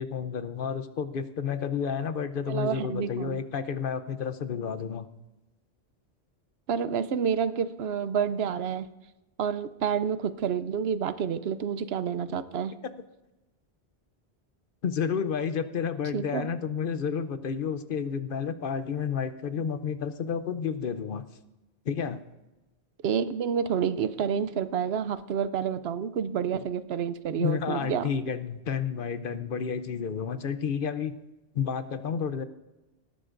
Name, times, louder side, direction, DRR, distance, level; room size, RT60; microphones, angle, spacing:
voice 1, 0.0-5.1 14.8-21.2 21.9-22.2 26.5-26.6 27.4-31.1 31.5-32.4, left 7 dB, 60° left, 11 dB, 0.8 m, -31 dB
voice 2, 2.5-3.4 6.7-8.9 9.4-12.7 16.1-16.5 23.0-28.1, right 7 dB, 70° right, 13 dB, 0.8 m, -29 dB
18.5 x 12.5 x 2.5 m, 1.0 s
omnidirectional pair, 1.1 m